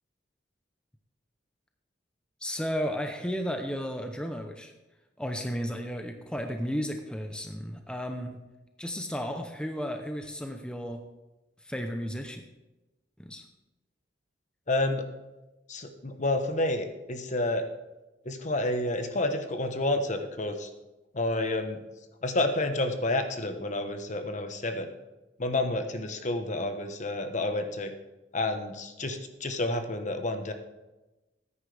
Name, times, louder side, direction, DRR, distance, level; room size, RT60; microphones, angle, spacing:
voice 1, 2.4-4.7 5.2-8.4 8.8-11.0 11.6-12.4 13.2-13.4, equal, 5° left, 4 dB, 0.7 m, -33 dB
voice 2, 14.7-15.1 15.7-17.6 18.2-20.7 21.1-21.8 22.2-24.9 25.4-27.9 28.3-30.5, left 2 dB, 45° left, 7 dB, 1.1 m, -29 dB
14.5 x 9.8 x 3.4 m, 1.1 s
head